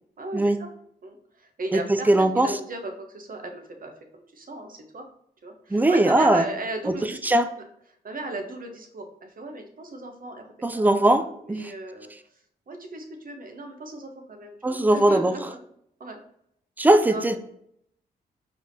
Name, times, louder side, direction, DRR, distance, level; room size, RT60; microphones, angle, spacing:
voice 1, 0.2-0.7 1.0-5.1 5.4-7.2 7.5-7.6 8.0-12.1 12.7-15.6 16.0-16.2 17.1-17.3, right 2 dB, 50° right, 4 dB, 0.8 m, -36 dB
voice 2, 2.1-2.5 5.7-6.4 6.9-7.0 7.2-7.5 10.6-11.7 14.6-15.3 16.8-17.4, right 1 dB, 10° right, 10 dB, 0.4 m, -20 dB
4.7 x 3.4 x 2.7 m, 0.72 s
cardioid pair, 55°, 18 cm